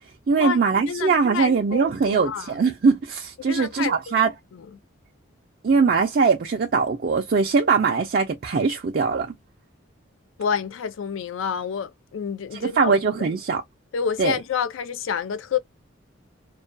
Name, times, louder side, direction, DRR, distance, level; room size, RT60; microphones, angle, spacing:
voice 1, 0.3-4.3 5.6-9.3 12.5-13.6 14.2-14.4, right 5 dB, 45° right, 0.4 m, -21 dB
voice 2, 0.9-2.6 3.5-4.7 10.4-13.0 13.9-15.6, left 7 dB, 70° left, 0.4 m, -29 dB
2.3 x 2.2 x 2.5 m
head